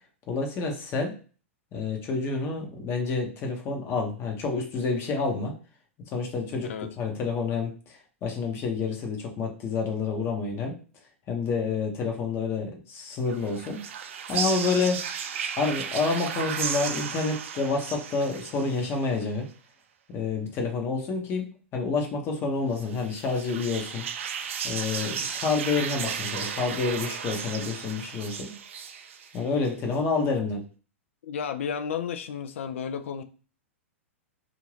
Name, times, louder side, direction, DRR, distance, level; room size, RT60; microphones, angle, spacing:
voice 1, 0.3-1.2 1.7-5.5 6.1-10.7 11.3-13.8 14.3-15.0 15.6-19.5 20.1-24.1 24.6-28.5 29.3-30.6, left 4 dB, 30° left, 0.9 m, -28 dB
voice 2, 6.6-6.9 31.2-33.2, left 7 dB, 65° left, 0.4 m, -32 dB
sound 1, 13.3-19.2 22.7-29.7, right 7 dB, 65° right, 0.4 m, -34 dB
2.7 x 2.5 x 3.2 m
figure-of-eight pair, 105°, 7 cm